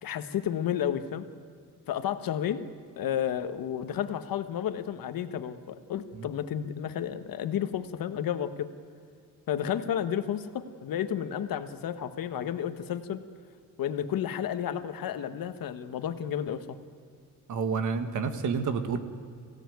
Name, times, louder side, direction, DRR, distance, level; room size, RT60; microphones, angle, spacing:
voice 1, 0.0-1.3 1.9-2.7 3.0-8.7 9.5-13.2 13.8-16.8, left 9 dB, 80° left, 10 dB, 1.3 m, -32 dB
voice 2, 17.5-19.0, right 5 dB, 60° right, 9 dB, 1.7 m, -29 dB
22.5 x 16.5 x 9.4 m, 2.2 s
wide cardioid pair, 175°, 34 cm